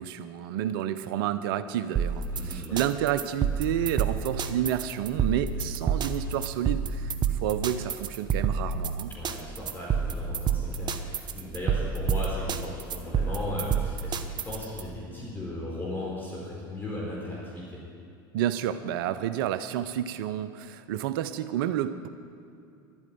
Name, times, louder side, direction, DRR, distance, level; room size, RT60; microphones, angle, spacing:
voice 1, 0.0-9.1 18.3-22.1, right 11 dB, 70° right, 13 dB, 0.6 m, -30 dB
sound 1, 2.0-14.8, right 6 dB, 40° right, 1.0 m, -28 dB
voice 2, 2.3-2.8 9.1-17.8, left 1 dB, 15° left, -6 dB, 4.3 m, -37 dB
12.0 x 8.8 x 9.3 m, 2.6 s
hypercardioid pair, 85°, 12 cm